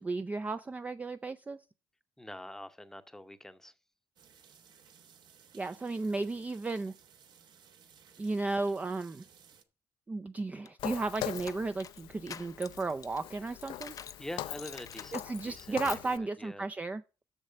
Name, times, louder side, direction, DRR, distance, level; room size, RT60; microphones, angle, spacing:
voice 1, 0.0-1.6 5.5-6.9 8.2-9.2 10.1-14.0 15.1-17.0, right 3 dB, 15° right, 0.4 m, -34 dB
voice 2, 2.2-3.7 14.2-16.7, left 1 dB, 5° left, 0.7 m, -45 dB
sound 1, 4.2-9.6, right 7 dB, 60° right, 1.1 m, -59 dB
sound 2, 10.7-14.2 14.6-16.2, left 8 dB, 45° left, 0.5 m, -48 dB
Walk footsteps, 10.8-16.2, left 13 dB, 90° left, 0.5 m, -42 dB
7.1 x 6.5 x 6.6 m
cardioid pair, 115°, 8 cm